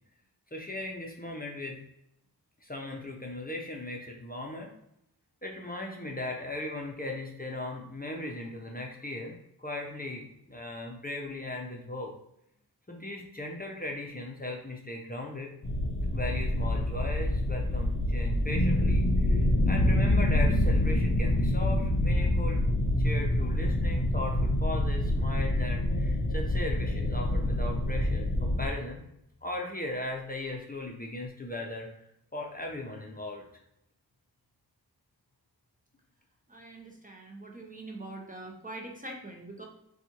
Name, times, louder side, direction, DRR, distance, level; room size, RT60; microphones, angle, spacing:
voice 1, 0.5-1.8 2.6-4.7 5.4-12.1 12.9-15.5 16.1-22.6 23.0-29.0 29.4-31.9 32.3-33.5, left 1 dB, 20° left, 0 dB, 0.7 m, -38 dB
sound 1, 15.6-28.7, left 1 dB, 50° left, 0.9 m, -26 dB
voice 2, 36.5-39.6, right 2 dB, 20° right, 0 dB, 0.7 m, -43 dB
4.1 x 2.3 x 2.9 m, 0.78 s
cardioid pair, 40°, 40 cm